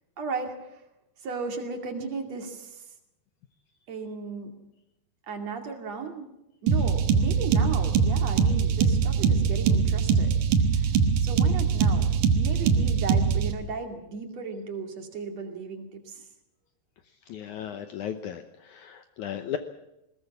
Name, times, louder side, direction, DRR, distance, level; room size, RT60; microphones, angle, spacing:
voice 1, 0.2-0.8 1.2-2.9 3.9-4.5 5.2-6.3 6.6-10.3 10.7-12.1 12.4-16.2, right 4 dB, 45° right, 4 dB, 3.2 m, -35 dB
sound 1, 6.7-13.5, right 6 dB, 60° right, 2.5 m, -22 dB
voice 2, 17.3-19.6, left 9 dB, 80° left, 9 dB, 1.7 m, -35 dB
20.5 x 18.5 x 7.2 m, 0.88 s
omnidirectional pair, 4.7 m